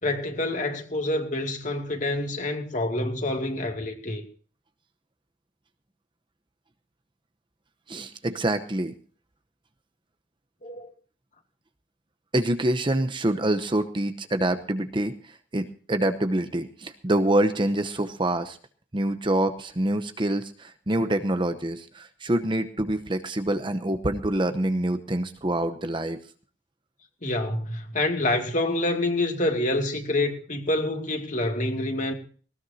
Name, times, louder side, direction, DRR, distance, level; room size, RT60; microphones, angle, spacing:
voice 1, 0.0-4.2 10.6-10.9 27.2-32.1, left 2 dB, 40° left, 2.5 m, -27 dB
voice 2, 7.9-9.0 12.3-18.6 18.9-26.2, right 1 dB, 25° right, 0.8 m, -26 dB
19.5 x 18.5 x 2.8 m
head